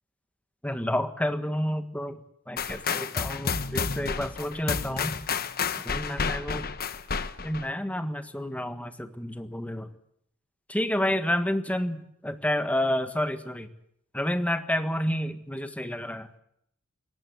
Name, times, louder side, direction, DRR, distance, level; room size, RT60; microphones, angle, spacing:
voice 1, 0.6-2.2 2.5-5.1 5.8-6.7 7.4-9.9 10.7-13.7 14.1-16.3, left 1 dB, 5° left, 9 dB, 1.6 m, -29 dB
sound 1, 2.6-7.7, left 5 dB, 45° left, 1.1 m, -30 dB
21.5 x 18.5 x 7.9 m, 0.70 s
head